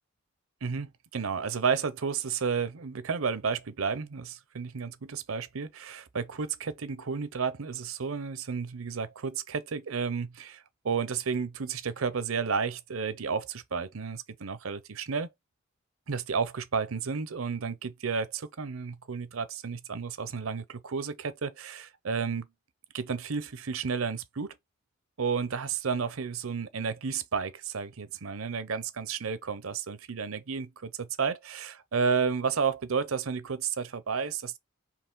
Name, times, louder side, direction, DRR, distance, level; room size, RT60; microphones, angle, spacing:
voice 1, 0.6-15.3 16.1-22.5 22.9-24.5 25.2-34.6, right 5 dB, 80° right, 0.7 m, -32 dB
4.7 x 3.0 x 3.8 m
head